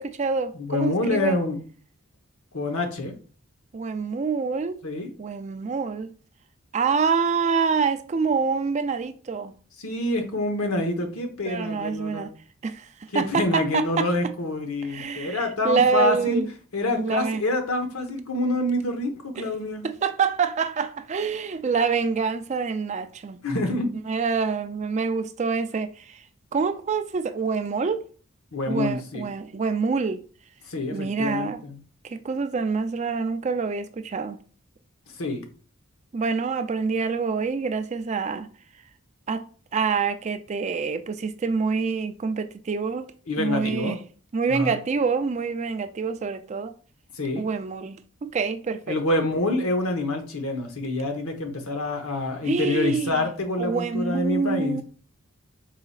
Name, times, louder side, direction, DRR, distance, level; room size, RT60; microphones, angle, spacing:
voice 1, 0.0-1.4 3.7-4.8 5.2-6.1 6.7-9.5 11.5-12.3 12.6-12.9 13.1-14.1 14.8-16.5 16.9-17.4 19.4-19.5 19.8-23.4 24.1-26.2 26.5-28.0 28.7-30.2 30.9-31.6 32.0-34.4 36.1-38.5 39.3-43.1 43.4-44.0 44.3-46.7 47.4-49.2 52.4-53.3 53.6-54.8, right 5 dB, 35° right, 0.3 m, -26 dB
voice 2, 0.5-1.6 2.5-3.1 4.8-5.1 9.8-12.3 13.1-16.4 16.7-19.9 23.4-23.9 28.5-29.3 30.7-31.8 35.2-35.4 43.3-44.0 44.5-44.8 47.1-47.4 48.9-54.8, left 2 dB, 85° left, 1.0 m, -27 dB
4.8 x 4.2 x 2.3 m
head